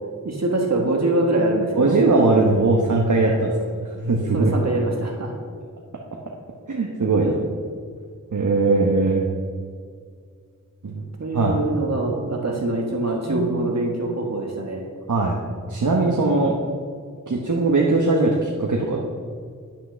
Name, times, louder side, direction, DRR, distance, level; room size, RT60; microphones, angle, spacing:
voice 1, 0.2-2.0 4.3-5.3 11.2-14.9, right 2 dB, 55° right, 0 dB, 1.4 m, -24 dB
voice 2, 1.8-3.5 4.0-4.5 6.7-7.4 8.3-9.2 10.8-11.0 11.3-11.6 13.2-13.7 15.1-15.4 15.7-16.5 17.3-19.0, right 3 dB, 70° right, -1 dB, 1.1 m, -20 dB
10.5 x 5.9 x 6.2 m, 2.1 s
wide cardioid pair, 70°, 31 cm